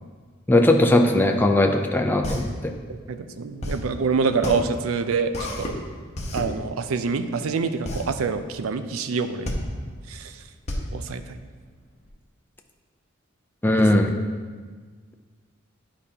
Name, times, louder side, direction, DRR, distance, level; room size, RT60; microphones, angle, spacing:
voice 1, 0.5-2.7 13.6-14.1, left 1 dB, 10° left, 3 dB, 0.4 m, -19 dB
sound 1, 2.2-12.1, left 1 dB, 35° left, 1.0 m, -32 dB
voice 2, 2.9-5.7 6.3-9.5 10.1-10.4 10.9-11.4 13.8-14.1, right 5 dB, 85° right, 10 dB, 0.4 m, -26 dB
10.5 x 4.9 x 2.8 m, 1.5 s
head